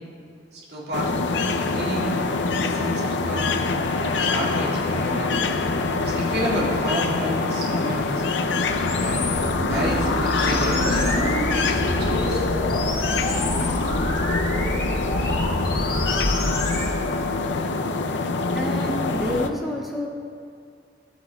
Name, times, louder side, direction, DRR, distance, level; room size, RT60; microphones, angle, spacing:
voice 1, 0.5-2.2 2.6-3.6 4.1-5.3 6.0-8.2 9.0-9.4 9.7-11.2 11.6-12.5 13.0-13.4, equal, 65° right, -6 dB, 2.2 m, -31 dB
sound 1, 0.9-19.5, left 3 dB, 80° left, 0.5 m, -25 dB
sound 2, 8.9-16.9, left 1 dB, 55° left, 1.4 m, -27 dB
Piano, 9.8-16.1, right 2 dB, 40° left, 2.4 m, -33 dB
voice 2, 18.3-20.1, equal, ahead, -2 dB, 0.5 m, -29 dB
16.0 x 7.9 x 2.3 m, 2.4 s
head